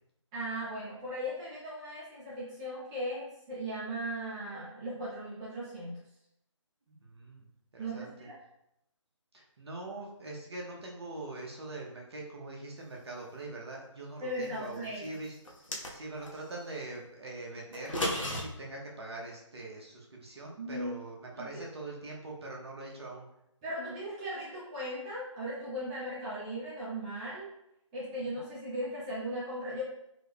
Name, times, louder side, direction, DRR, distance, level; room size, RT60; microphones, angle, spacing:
voice 1, 0.3-6.0 7.8-8.4 14.2-15.1 20.6-21.0 21.3-21.4 23.6-27.5 27.9-29.8, equal, 10° right, -9 dB, 0.4 m, -37 dB
voice 2, 6.9-7.4 7.7-8.1 9.3-15.3 15.9-23.3 28.3-28.4, right 2 dB, 55° right, -1 dB, 0.9 m, -43 dB
sound 1, 15.4-16.4 17.7-18.4, left 1 dB, 75° left, 0.9 m, -33 dB
3.5 x 2.2 x 3.5 m, 0.81 s
figure-of-eight pair, 150°, 16 cm